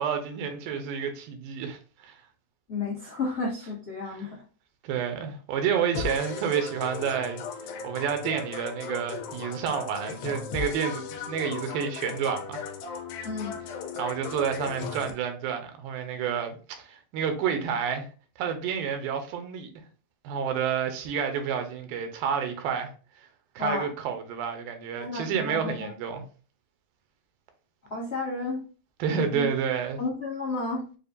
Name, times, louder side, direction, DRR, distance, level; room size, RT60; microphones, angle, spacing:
voice 1, 0.0-2.2 4.1-4.3 4.8-7.4 7.8-12.6 14.0-18.1 18.4-19.7 20.2-22.9 23.6-26.3 29.0-30.0, right 7 dB, 85° right, 2.5 m, -29 dB
voice 2, 2.7-4.3 13.2-13.6 23.6-23.9 25.0-25.9 27.9-28.6 29.3-29.4 30.0-30.8, left 3 dB, 60° left, 0.6 m, -32 dB
sound 1, 5.9-15.1, left 6 dB, 90° left, 2.5 m, -37 dB
6.6 x 2.5 x 2.5 m
omnidirectional pair, 4.0 m